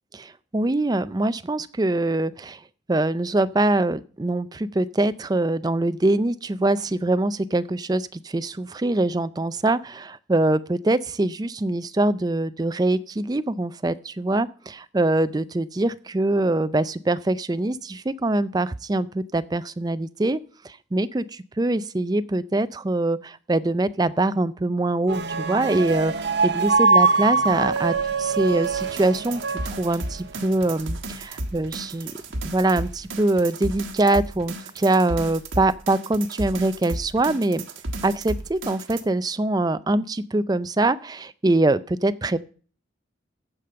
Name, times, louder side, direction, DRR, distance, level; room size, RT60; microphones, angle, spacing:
voice 1, 0.1-2.6 2.9-20.4 20.6-32.1 32.4-37.6 38.0-42.4, right 2 dB, 20° right, 14 dB, 0.4 m, -23 dB
sound 1, 25.1-30.4, right 4 dB, 60° right, 0.8 m, -23 dB
sound 2, 28.7-39.0, right 1 dB, 80° right, 1.5 m, -34 dB
14.5 x 5.1 x 6.7 m, 0.41 s
head